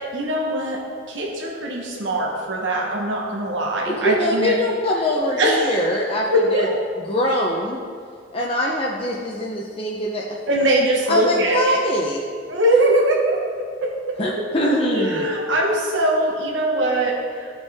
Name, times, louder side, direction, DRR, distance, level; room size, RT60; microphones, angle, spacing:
voice 1, 0.1-0.8 1.1-4.5 5.4-5.8 6.3-6.7 10.5-11.8 12.5-13.4 13.8-13.9 14.9-17.5, right 1 dB, 85° right, -1 dB, 1.2 m, -21 dB
voice 2, 3.8-6.7 7.0-7.8 8.3-10.4 11.1-12.2 14.2-15.3, equal, 30° left, -2 dB, 0.7 m, -23 dB
14.5 x 5.4 x 3.6 m, 2.2 s
head